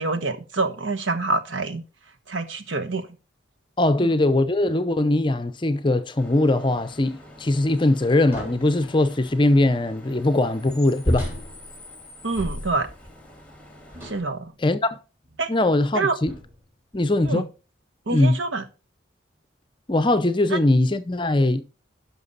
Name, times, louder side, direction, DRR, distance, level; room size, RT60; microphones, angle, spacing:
voice 1, 0.0-1.8 2.3-3.1 4.0-4.1 12.2-12.9 14.0-14.5 15.4-15.5 15.9-16.2 17.2-17.5 18.1-18.6 20.5-20.6, right 3 dB, 80° right, 1.2 m, -26 dB
voice 2, 3.8-11.2 14.6-15.0 15.5-16.3 16.9-17.5 18.1-18.4 19.9-21.6, left 2 dB, 25° left, 0.6 m, -21 dB
Bus / Idling / Screech, 6.2-14.2, left 1 dB, 5° left, 1.6 m, -46 dB
sound 1, 8.3-8.8 11.0-13.0 13.9-14.4 15.2-15.4 16.3-16.7, equal, 10° right, 3.1 m, -31 dB
11.0 x 6.0 x 4.0 m
head